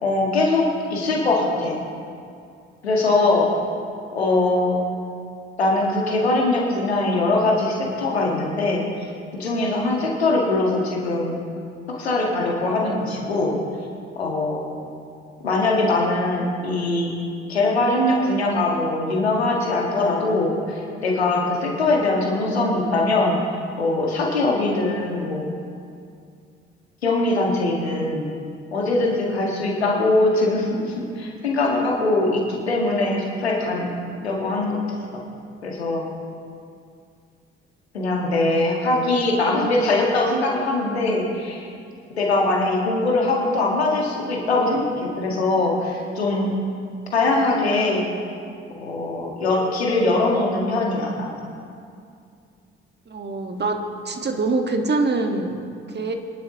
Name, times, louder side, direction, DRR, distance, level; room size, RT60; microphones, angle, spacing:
voice 1, 0.0-1.7 2.8-3.5 4.1-4.8 5.6-11.4 11.9-13.5 14.2-14.7 15.4-17.1 17.5-23.4 23.8-25.5 27.0-28.3 28.7-33.9 34.2-34.8 35.6-36.0 37.9-41.7 42.2-46.5 47.1-48.0 48.8-51.3, left 2 dB, 90° left, -1 dB, 1.8 m, -22 dB
voice 2, 53.1-53.8 54.1-56.1, right 3 dB, 35° right, 4 dB, 1.7 m, -24 dB
24.0 x 11.0 x 3.0 m, 2.4 s
figure-of-eight pair, 45°, 31 cm